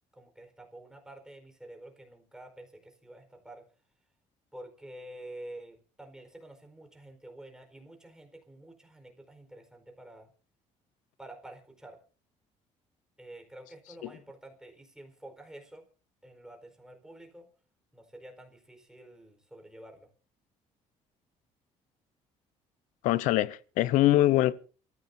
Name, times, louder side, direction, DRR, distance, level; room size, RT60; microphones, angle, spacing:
voice 1, 0.1-3.7 4.5-10.3 11.2-12.0 13.2-15.9 16.2-17.5 17.9-20.1, right 1 dB, 5° right, 4.5 m, -49 dB
voice 2, 23.0-24.5, left 15 dB, 85° left, 0.9 m, -23 dB
28.0 x 15.0 x 2.8 m
cardioid pair, 115°, 13 cm